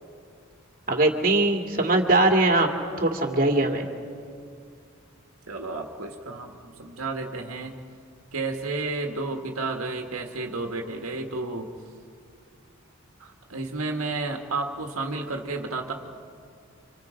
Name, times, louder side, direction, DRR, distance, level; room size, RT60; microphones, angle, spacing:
voice 1, 0.9-2.7 3.0-3.9, right 2 dB, 40° right, 2 dB, 2.3 m, -21 dB
voice 2, 5.5-7.8 8.3-11.7 13.2-15.9, right 3 dB, 90° right, 3 dB, 1.7 m, -32 dB
29.5 x 26.0 x 5.1 m, 2.3 s
head